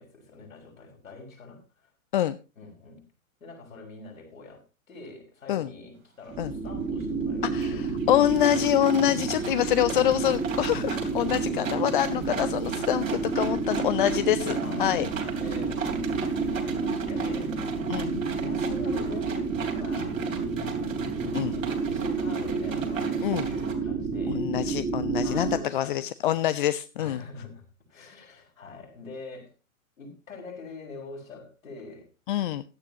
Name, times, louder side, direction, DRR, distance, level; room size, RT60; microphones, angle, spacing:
voice 1, 0.0-1.9 2.6-3.0 3.4-4.6 4.9-7.8 9.0-9.6 11.3-11.6 12.0-12.3 14.6-15.0 15.3-15.8 16.5-17.6 18.4-20.2 21.5-24.5 25.2-26.0 27.0-29.5 30.0-32.1, left 3 dB, 70° left, 6.1 m, -44 dB
sound 1, 6.3-25.6, right 4 dB, 15° right, 2.2 m, -30 dB
sound 2, 6.4-6.5 6.8-7.2 7.6-23.7, right 6 dB, 65° right, 3.3 m, -39 dB
voice 2, 7.5-15.1 17.9-18.2 21.3-21.5 23.2-23.5 24.3-27.2 32.3-32.6, left 12 dB, 40° left, 0.6 m, -26 dB
16.5 x 11.5 x 2.9 m
figure-of-eight pair, 110°, 42 cm